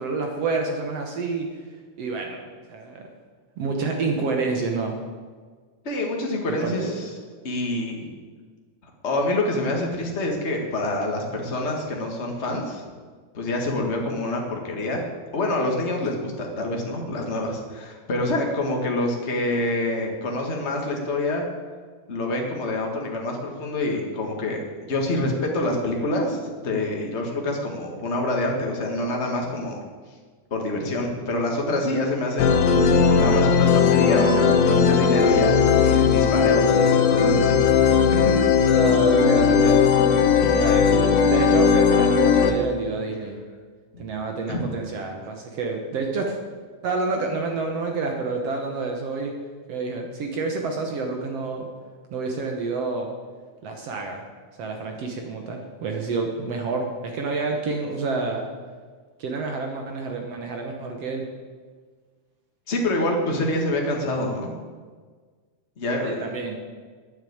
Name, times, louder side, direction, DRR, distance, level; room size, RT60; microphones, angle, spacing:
voice 1, 0.0-1.5 2.0-3.1 3.6-4.9 6.5-6.9 38.7-39.9 40.6-43.4 44.0-46.4 46.8-49.3 49.7-51.7 52.1-53.1 53.6-54.2 54.6-58.5 59.2-61.3 66.0-66.6, right 3 dB, 65° right, 2 dB, 1.6 m, -28 dB
voice 2, 5.8-7.1 7.4-8.0 9.0-12.8 13.3-15.1 15.3-21.5 22.1-29.8 30.5-35.5 35.8-38.3 40.4-40.8 43.9-44.0 44.5-44.6 62.7-64.5 65.8-66.2, left 1 dB, 50° left, 1 dB, 0.7 m, -26 dB
sound 1, 32.4-42.5, left 6 dB, 70° left, 2.6 m, -18 dB
9.7 x 9.0 x 8.5 m, 1.5 s
omnidirectional pair, 4.2 m